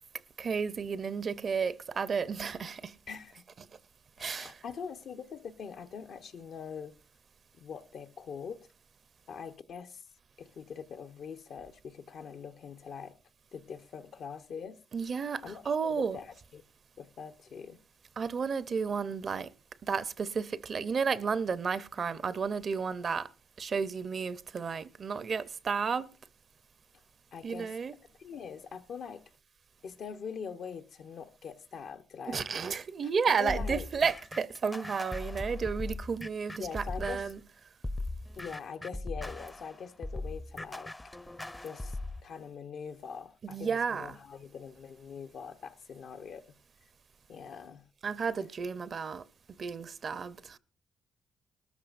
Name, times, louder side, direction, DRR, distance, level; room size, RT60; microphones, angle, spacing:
voice 1, 0.4-3.0 4.2-4.5 14.9-16.2 18.2-19.5 19.8-23.3 23.6-26.1 27.4-27.9 32.3-37.4 43.4-44.2 48.0-49.2 49.6-50.6, right 5 dB, 55° right, 0.5 m, -32 dB
voice 2, 3.1-3.5 4.2-6.9 7.5-8.7 9.3-10.1 10.4-13.2 13.5-14.8 15.2-16.6 17.0-17.8 27.3-27.7 28.1-29.2 29.8-32.4 32.7-32.8 33.4-33.9 36.6-37.3 38.4-40.9 41.6-46.4 47.3-47.8, left 6 dB, 75° left, 0.8 m, -43 dB
sound 1, 33.5-37.4 37.8-42.2, left 2 dB, 15° left, 0.5 m, -39 dB
20.0 x 13.5 x 2.5 m
cardioid pair, 75°, 0 cm